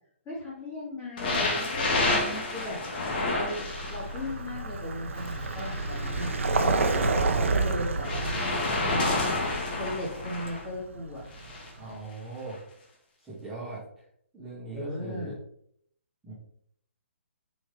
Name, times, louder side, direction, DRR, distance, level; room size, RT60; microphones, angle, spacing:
voice 1, 0.2-2.8 3.3-3.6 3.9-6.3 6.6-8.6 8.8-9.3 9.7-11.2 14.7-15.3, left 1 dB, 20° left, -6 dB, 2.8 m, -36 dB
sound 1, 1.2-4.3 5.2-7.0 8.0-10.6 11.3-11.7 12.5-12.6, left 2 dB, 45° left, 1.9 m, -30 dB
Vehicle, 3.0-11.8, right 3 dB, 70° right, 0.9 m, -30 dB
voice 2, 11.8-12.6 13.2-13.9 14.3-15.4 16.2-16.3, right 2 dB, 5° right, -10 dB, 2.2 m, -39 dB
5.7 x 5.2 x 3.5 m, 0.67 s
hypercardioid pair, 140°, 7 cm